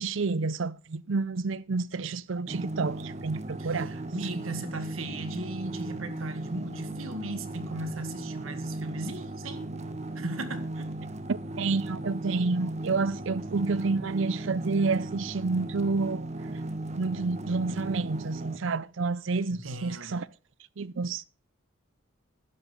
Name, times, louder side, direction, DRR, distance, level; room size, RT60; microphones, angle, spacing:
voice 1, 0.0-3.9 11.3-16.3 17.0-20.3 20.8-21.3, right 3 dB, 65° right, 0.5 m, -29 dB
sound 1, 2.5-18.6, right 2 dB, 35° right, 1.2 m, -37 dB
voice 2, 3.6-9.7 10.2-10.9 19.5-20.2, right 1 dB, 80° right, 1.9 m, -37 dB
11.5 x 11.0 x 5.4 m
head